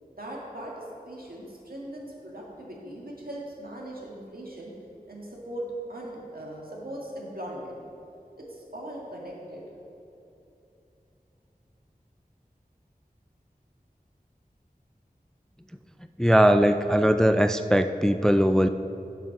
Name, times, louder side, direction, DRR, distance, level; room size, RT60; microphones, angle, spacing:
voice 1, 0.2-4.7 5.1-7.8 8.3-9.7, right 1 dB, 70° right, -3 dB, 1.9 m, -39 dB
voice 2, 16.2-18.7, equal, 5° left, 9 dB, 0.3 m, -20 dB
7.7 x 7.6 x 5.9 m, 2.9 s
wide cardioid pair, 45°, 16 cm